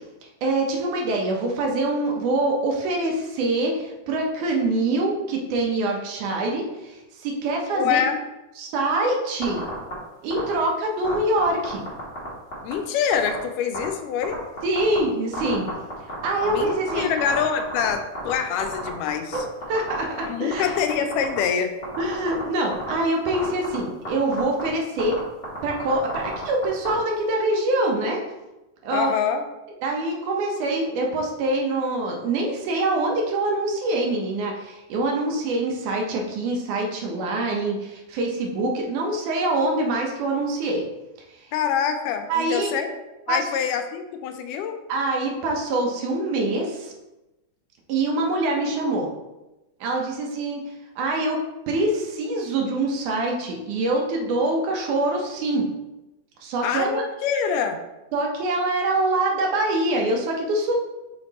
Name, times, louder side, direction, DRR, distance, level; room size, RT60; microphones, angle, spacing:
voice 1, 0.4-8.0 8.6-9.6 10.2-11.8 14.6-15.7 16.0-17.1 19.3-20.7 22.0-25.2 25.6-28.2 28.8-29.1 29.8-40.8 41.3-41.5 42.3-42.7 43.3-43.5 44.9-46.9 47.9-49.1 49.8-50.6 51.0-51.4 51.7-55.7 56.4-57.0 58.1-60.7, right 2 dB, 75° right, 0 dB, 2.4 m, -25 dB
voice 2, 7.7-8.2 12.6-14.4 16.5-19.5 20.3-21.7 28.9-29.4 41.5-42.9 43.3-44.8 56.6-57.8, left 7 dB, 85° left, 7 dB, 2.2 m, -25 dB
sound 1, 9.4-9.9 10.3-10.5 11.0-12.3 12.5-12.7 13.1-13.3 13.7-13.8 14.2-15.0 15.3-18.3 18.6-19.4 19.6-20.2 20.5-21.4 21.8-22.4 22.7-22.9 23.3-23.7 24.0-24.1 24.3-24.6 25.0-25.2 25.4-26.9, left 2 dB, 25° left, 1.5 m, -32 dB
5.6 x 4.3 x 4.1 m, 0.99 s
omnidirectional pair, 3.7 m